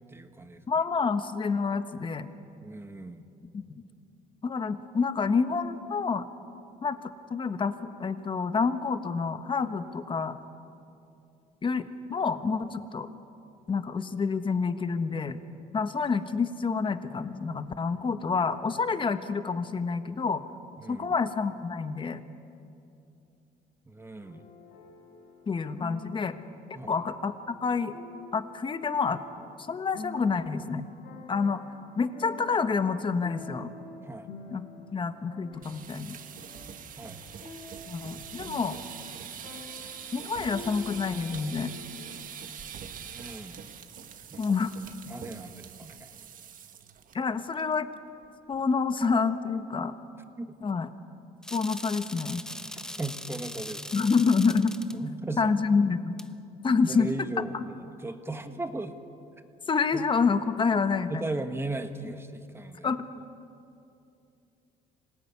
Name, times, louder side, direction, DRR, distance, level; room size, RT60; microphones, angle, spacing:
voice 1, 0.1-0.6 2.6-3.3 20.8-21.1 23.9-24.4 26.7-27.0 34.0-34.3 37.0-37.2 43.0-43.6 44.3-44.5 45.1-46.1 50.4-50.6 52.7-53.8 54.9-55.5 56.9-59.0 59.9-60.1 61.1-62.9, right 2 dB, 15° right, 7 dB, 1.6 m, -37 dB
voice 2, 0.7-2.3 3.5-3.8 4.4-6.3 6.8-7.0 7.3-10.4 11.6-13.1 13.7-15.4 15.7-20.4 20.9-22.2 25.5-26.4 26.9-27.3 27.6-27.9 28.3-29.2 29.6-30.8 31.3-31.6 31.9-33.7 34.5-34.6 34.9-36.2 37.9-38.8 40.1-41.7 44.4-44.7 47.1-47.9 48.5-49.9 50.6-50.9 51.5-52.4 53.9-54.8 55.4-56.2 56.6-57.1 59.7-61.2 62.8-63.0, left 5 dB, 30° left, 10 dB, 1.3 m, -28 dB
sound 1, 24.2-42.3, left 4 dB, 80° left, 5.0 m, -48 dB
sound 2, 35.5-47.1 47.5-47.7 48.1-48.2 48.5-48.9, right 8 dB, 55° right, 1.6 m, -44 dB
sound 3, 51.4-55.0 56.2-56.3, left 1 dB, 5° left, 0.8 m, -40 dB
25.5 x 18.5 x 9.7 m, 2.7 s
cardioid pair, 110°, 17 cm